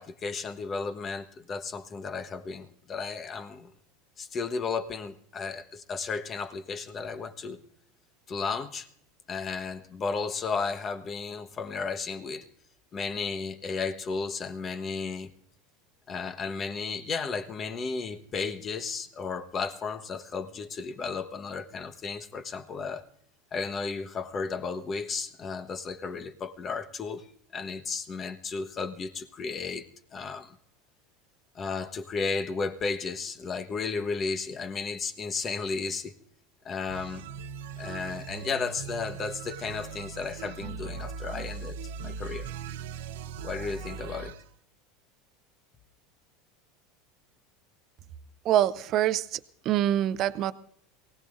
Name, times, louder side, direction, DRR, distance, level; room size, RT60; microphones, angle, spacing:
voice 1, 0.0-3.7 4.2-7.6 8.3-8.9 9.3-12.5 12.9-15.3 16.1-23.0 23.5-27.3 27.5-30.5 31.5-36.1 36.6-37.2 37.8-41.8 42.0-42.5 43.4-44.3, left 4 dB, 30° left, 10 dB, 1.2 m, -34 dB
sound 1, 36.9-44.4, right 5 dB, 80° right, 0.8 m, -39 dB
voice 2, 48.4-49.4 49.6-50.5, right 12 dB, 50° right, 13 dB, 0.6 m, -25 dB
23.5 x 17.5 x 2.6 m, 0.68 s
supercardioid pair, 105°, 0 cm